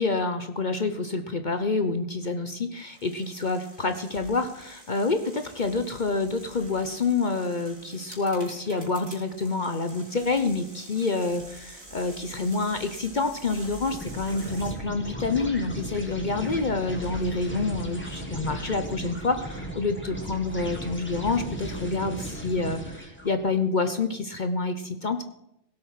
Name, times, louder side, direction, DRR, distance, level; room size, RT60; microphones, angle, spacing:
voice 1, 0.0-25.2, left 3 dB, 40° left, 8 dB, 0.9 m, -28 dB
sound 1, 2.7-14.7, right 2 dB, 65° right, 3.8 m, -47 dB
sound 2, 13.9-23.3, equal, 10° left, 2.1 m, -36 dB
17.5 x 7.9 x 5.7 m, 0.81 s
omnidirectional pair, 1.4 m